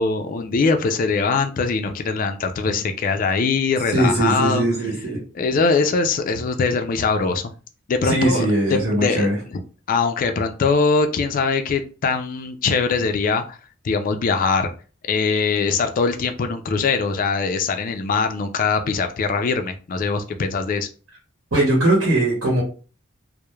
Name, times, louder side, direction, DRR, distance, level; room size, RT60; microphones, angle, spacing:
voice 1, 0.0-4.6 5.4-7.5 7.9-9.3 9.9-13.6 13.8-14.7 15.1-20.9, left 4 dB, 45° left, 6 dB, 0.3 m, -22 dB
voice 2, 3.9-5.2 8.0-9.4 21.5-22.6, right 1 dB, 85° right, -3 dB, 0.9 m, -20 dB
3.0 x 2.0 x 2.2 m, 0.37 s
head